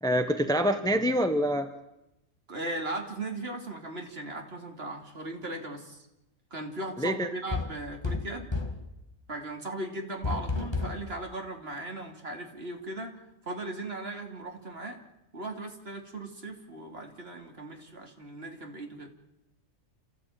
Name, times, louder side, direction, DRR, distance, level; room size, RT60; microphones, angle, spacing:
voice 1, 0.0-1.7 7.0-7.3, equal, 5° left, 8 dB, 1.1 m, -26 dB
voice 2, 2.5-6.0 6.5-8.5 9.3-15.0 15.3-19.1, right 2 dB, 50° right, 3 dB, 3.1 m, -38 dB
sound 1, 7.5-8.9 10.2-11.1, left 3 dB, 20° left, 2.0 m, -31 dB
28.5 x 15.0 x 9.2 m, 0.91 s
omnidirectional pair, 1.4 m